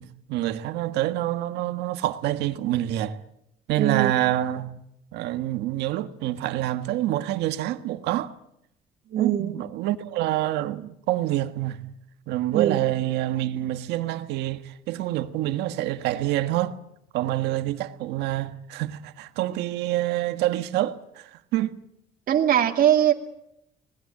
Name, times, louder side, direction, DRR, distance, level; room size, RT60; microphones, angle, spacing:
voice 1, 0.0-3.2 3.7-4.8 5.1-8.3 9.2-11.9 12.3-16.8 17.1-21.7, right 14 dB, 85° right, 1.6 m, -27 dB
voice 2, 3.8-4.1 9.1-9.5 12.5-12.8 22.3-23.1, right 10 dB, 55° right, 2.4 m, -21 dB
27.0 x 19.5 x 8.7 m
cardioid pair, 110°, 17 cm